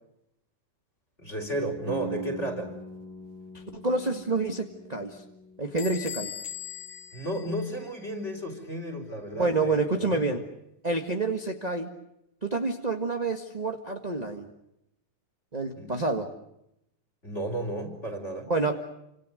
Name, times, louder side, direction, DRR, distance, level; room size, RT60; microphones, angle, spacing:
voice 1, 1.2-2.7 7.1-10.4 15.8-15.9 17.2-18.5, right 1 dB, 20° left, 6 dB, 5.0 m, -33 dB
sound 1, 1.9-7.6, right 3 dB, 60° right, 3.3 m, -42 dB
voice 2, 3.5-5.2 5.6-6.3 9.4-10.4 10.8-11.9 12.4-14.5 15.5-16.3 18.5-18.7, right 3 dB, 20° right, 4 dB, 1.1 m, -28 dB
Bell / Door, 5.8-8.3, left 9 dB, 50° left, 3.4 m, -40 dB
29.5 x 26.5 x 6.5 m, 0.82 s
omnidirectional pair, 3.7 m